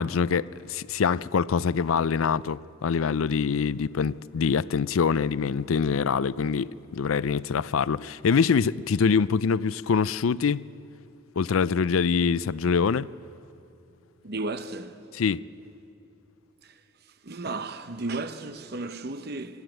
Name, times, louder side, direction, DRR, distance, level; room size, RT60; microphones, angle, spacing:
voice 1, 0.0-10.7 11.4-13.1 15.2-15.4, left 5 dB, 80° left, 0.5 m, -24 dB
voice 2, 14.2-15.0 16.6-16.8 17.2-19.6, right 2 dB, 50° right, 0.8 m, -34 dB
26.0 x 13.5 x 9.2 m
head